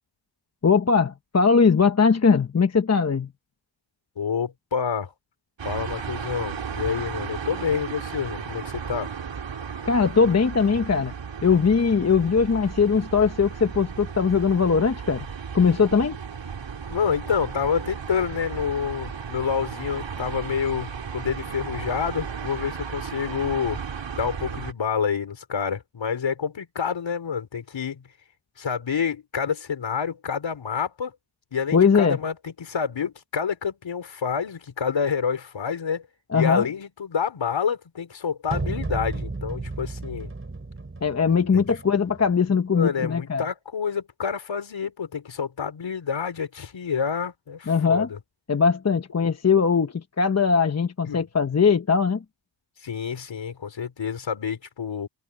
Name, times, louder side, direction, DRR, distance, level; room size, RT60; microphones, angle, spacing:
voice 1, 0.6-3.3 9.9-11.1 11.4-15.3 15.5-16.2 31.7-32.2 36.3-36.6 41.0-43.4 47.7-48.1 48.5-52.2, left 5 dB, 30° left, 1.1 m, -20 dB
voice 2, 4.2-5.1 5.6-9.1 16.9-23.8 24.1-28.0 28.6-31.1 31.5-36.1 36.3-40.3 41.5-41.8 42.7-48.2 49.2-49.3 51.0-51.3 52.8-55.1, left 6 dB, 65° left, 4.8 m, -28 dB
sound 1, 5.6-24.7, right 6 dB, 60° right, 3.6 m, -35 dB
sound 2, 38.5-42.5, right 3 dB, 25° right, 5.7 m, -33 dB
wide cardioid pair, 110°, 49 cm